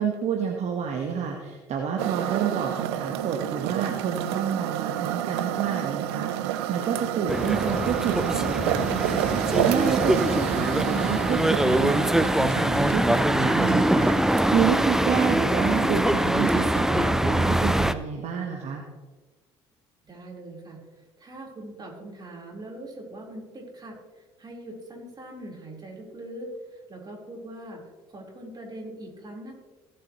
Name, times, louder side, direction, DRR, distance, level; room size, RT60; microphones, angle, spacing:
voice 1, 0.0-9.3 9.6-10.1 10.4-18.8, right 7 dB, 55° right, 2 dB, 1.4 m, -29 dB
sound 1, 2.0-16.8, right 12 dB, 75° right, 0.6 m, -30 dB
sound 2, 7.3-17.9, right 1 dB, 5° right, 0.6 m, -23 dB
voice 2, 20.0-27.8 28.1-29.6, right 1 dB, 30° right, -2 dB, 4.1 m, -42 dB
18.0 x 7.7 x 3.1 m, 1.3 s
hypercardioid pair, 60°, 14 cm